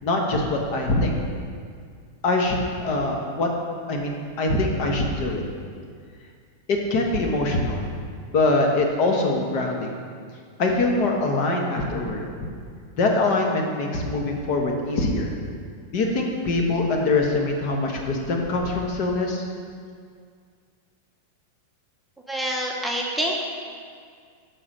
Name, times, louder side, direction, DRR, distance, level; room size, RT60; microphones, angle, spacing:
voice 1, 0.0-1.2 2.2-3.5 3.9-5.4 6.7-7.8 8.3-9.9 10.6-12.5 13.0-15.3 15.9-19.4, left 2 dB, 45° left, 1 dB, 1.1 m, -23 dB
voice 2, 22.3-23.3, right 1 dB, ahead, -2 dB, 0.8 m, -26 dB
6.1 x 4.5 x 6.5 m, 2.1 s
figure-of-eight pair, 90°, 0 cm